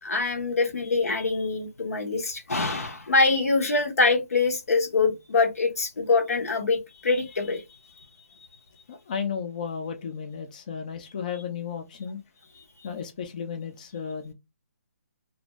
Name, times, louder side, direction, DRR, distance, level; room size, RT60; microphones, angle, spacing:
voice 1, 0.0-7.6, left 3 dB, 80° left, 1.0 m, -24 dB
voice 2, 8.9-12.2 12.8-14.3, left 6 dB, 30° left, 0.4 m, -34 dB
2.5 x 2.2 x 3.0 m
hypercardioid pair, 170°, 8 cm